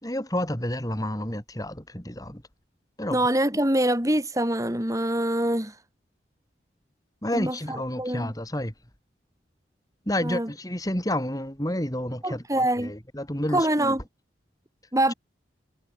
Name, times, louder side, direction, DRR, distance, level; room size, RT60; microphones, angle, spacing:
voice 1, 0.0-2.4 3.0-3.2 7.2-8.7 10.1-14.0, left 1 dB, 20° left, 3.7 m, -30 dB
voice 2, 3.1-5.8 7.3-8.3 10.2-10.5 12.2-12.9 13.5-14.0 14.9-15.1, right 1 dB, 15° right, 3.8 m, -25 dB
head